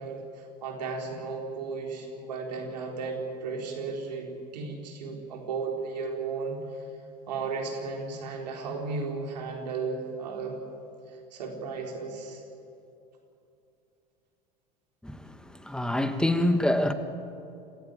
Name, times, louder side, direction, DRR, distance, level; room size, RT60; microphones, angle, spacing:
voice 1, 0.0-6.8 7.3-10.6 11.1-12.4, right 4 dB, 80° right, 1 dB, 4.0 m, -35 dB
voice 2, 15.0-16.9, left 1 dB, 5° left, 8 dB, 1.8 m, -26 dB
27.0 x 14.5 x 9.0 m, 2.7 s
hypercardioid pair, 80°, 21 cm